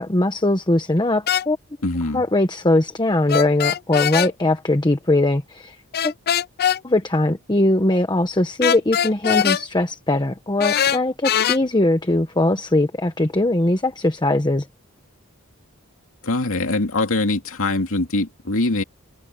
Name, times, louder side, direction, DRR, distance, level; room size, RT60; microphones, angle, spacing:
voice 1, 0.0-1.6 2.1-5.8 6.0-6.1 6.8-14.7, left 1 dB, 20° left, 1.2 m, -20 dB
sound 1, 1.3-1.5 3.3-4.3 5.9-6.8 8.6-9.6 10.6-11.6, left 9 dB, 45° left, 0.5 m, -21 dB
voice 2, 1.8-2.2 16.2-18.8, left 2 dB, 65° left, 2.5 m, -22 dB
head